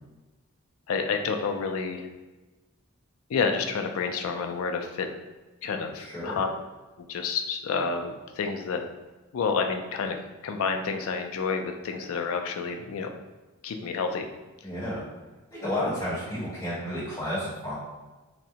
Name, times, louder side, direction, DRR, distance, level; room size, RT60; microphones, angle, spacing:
voice 1, 0.9-2.1 3.3-5.1 5.6-6.5 7.0-8.8 9.3-13.1 13.6-14.3, left 5 dB, 70° left, 5 dB, 0.3 m, -29 dB
voice 2, 6.1-6.4 14.6-15.0 15.5-17.7, left 1 dB, 15° left, -9 dB, 1.0 m, -31 dB
3.5 x 2.0 x 2.7 m, 1.2 s
head